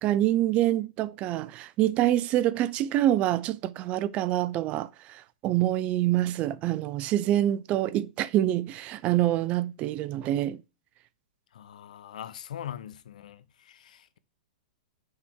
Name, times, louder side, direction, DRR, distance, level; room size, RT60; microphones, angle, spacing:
voice 1, 0.0-10.6, right 13 dB, 30° right, 0.3 m, -26 dB
voice 2, 11.5-14.2, left 10 dB, 75° left, 0.7 m, -42 dB
6.4 x 3.5 x 4.5 m
hypercardioid pair, 130°, 4 cm